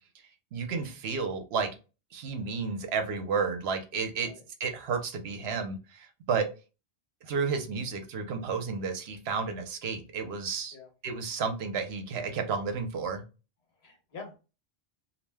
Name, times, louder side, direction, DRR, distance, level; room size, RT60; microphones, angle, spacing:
voice 1, 0.5-1.7 2.1-4.3 4.6-6.5 7.3-10.7 11.0-13.2, right 5 dB, 75° right, 7 dB, 0.8 m, -32 dB
voice 2, 13.8-14.4, left 4 dB, 75° left, 2 dB, 1.1 m, -45 dB
2.4 x 2.1 x 3.3 m, 0.31 s
omnidirectional pair, 1.1 m